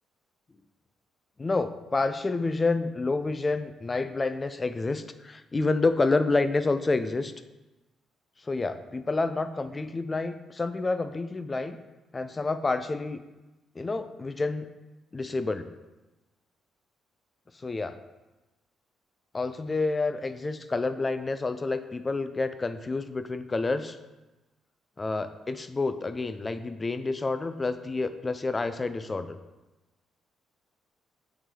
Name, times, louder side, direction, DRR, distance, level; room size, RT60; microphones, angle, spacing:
voice 1, 1.4-7.3 8.4-11.8 12.1-13.2 13.8-14.7 15.1-15.7 17.6-18.0 19.3-24.0 25.0-29.4, left 3 dB, 25° left, 11 dB, 0.4 m, -28 dB
7.9 x 3.3 x 3.7 m, 1.1 s
cardioid pair, 90°, 0 cm